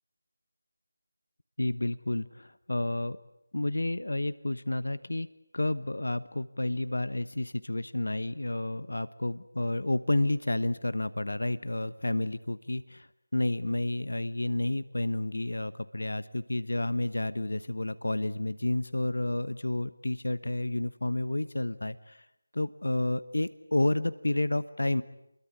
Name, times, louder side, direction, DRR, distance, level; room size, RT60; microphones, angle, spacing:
voice 1, 1.6-3.2 3.5-5.3 5.5-13.1 13.3-22.2 22.5-25.0, left 1 dB, 80° left, 14 dB, 1.1 m, -30 dB
29.0 x 22.5 x 8.6 m, 0.82 s
figure-of-eight pair, 170°, 0 cm